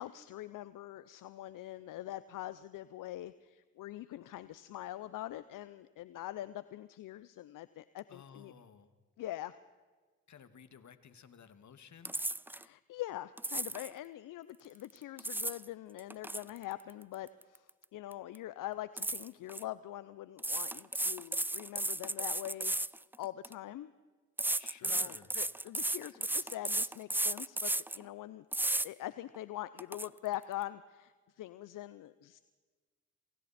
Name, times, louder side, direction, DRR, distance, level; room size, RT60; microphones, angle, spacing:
voice 1, 0.0-8.5 9.2-9.6 12.6-22.8 23.2-23.9 24.8-32.4, left 14 dB, 80° left, 15 dB, 0.8 m, -43 dB
voice 2, 8.1-8.9 10.3-12.1 24.6-25.3, left 7 dB, 60° left, 11 dB, 2.1 m, -55 dB
sound 1, 12.0-12.6 13.4-13.9 15.0-15.6 16.0-17.8 18.1-18.4 19.0-19.6 20.4-23.5 24.4-28.0 28.5-28.9 29.3-29.4 29.8-30.1, right 1 dB, 5° right, 0.5 m, -34 dB
27.5 x 24.5 x 4.3 m, 1.4 s
supercardioid pair, 55°, 32 cm